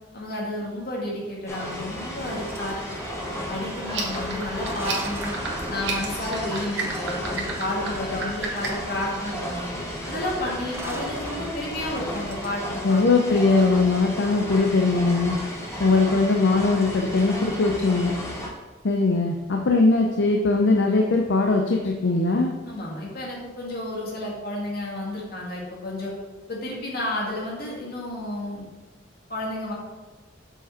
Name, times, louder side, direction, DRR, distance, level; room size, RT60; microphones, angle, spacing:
voice 1, 0.1-3.0 3.5-5.3 5.7-9.7 10.1-13.0 22.7-26.1 26.5-28.7 29.3-29.7, left 1 dB, 55° left, -4 dB, 2.0 m, -31 dB
sound 1, 1.5-18.5, equal, 15° left, 1.2 m, -34 dB
sound 2, 1.9-12.6, right 1 dB, 15° right, 0.5 m, -39 dB
sound 3, 3.8-8.9, right 5 dB, 85° right, 1.4 m, -33 dB
voice 2, 12.8-15.4 15.8-18.2 18.8-22.5, left 3 dB, 70° left, 1 dB, 0.6 m, -20 dB
6.8 x 4.9 x 4.4 m, 1.2 s
head